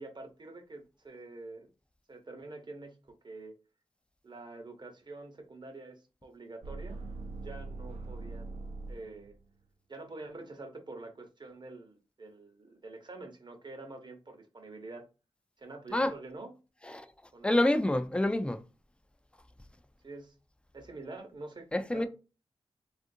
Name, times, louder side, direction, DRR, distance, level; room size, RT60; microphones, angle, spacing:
voice 1, 0.0-1.7 2.1-3.5 4.2-7.0 7.4-9.3 9.9-15.0 15.6-16.5 17.3-17.5 20.0-20.4 20.7-22.1, right 2 dB, 45° right, 0.9 m, -46 dB
sound 1, 6.6-9.5, right 3 dB, 70° right, 0.6 m, -42 dB
voice 2, 17.4-18.6 21.7-22.1, left 1 dB, 10° left, 0.4 m, -27 dB
3.4 x 2.5 x 2.6 m
cardioid pair, 65°, 11 cm